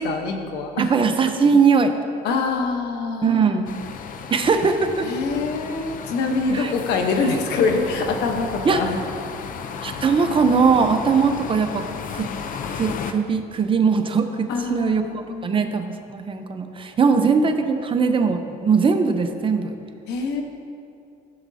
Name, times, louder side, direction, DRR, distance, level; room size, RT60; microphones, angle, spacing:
voice 1, 0.0-0.9 2.2-3.5 5.0-9.0 14.5-15.6 20.1-20.4, left 4 dB, 80° left, 4 dB, 1.1 m, -25 dB
voice 2, 0.8-2.0 3.2-3.7 4.3-5.1 6.5-6.7 7.2-7.4 8.6-8.8 9.8-12.3 12.7-19.7, right 5 dB, 30° right, 6 dB, 0.7 m, -20 dB
sound 1, 3.7-13.1, left 6 dB, 55° left, 0.6 m, -34 dB
14.0 x 7.4 x 2.7 m, 2.5 s
cardioid pair, 110°, 17 cm